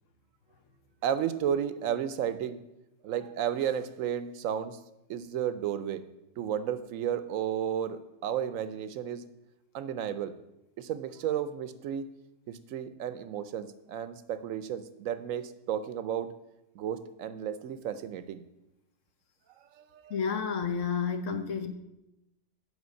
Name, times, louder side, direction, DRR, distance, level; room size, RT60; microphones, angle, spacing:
voice 1, 1.0-2.6 3.0-4.8 5.1-6.0 6.4-9.2 9.7-10.3 10.8-12.1 12.5-16.3 16.7-18.4 19.7-20.2, right 9 dB, 85° right, 12 dB, 1.0 m, -33 dB
voice 2, 20.1-21.7, left 6 dB, 75° left, 8 dB, 1.2 m, -30 dB
8.2 x 4.9 x 6.3 m, 0.90 s
omnidirectional pair, 1.3 m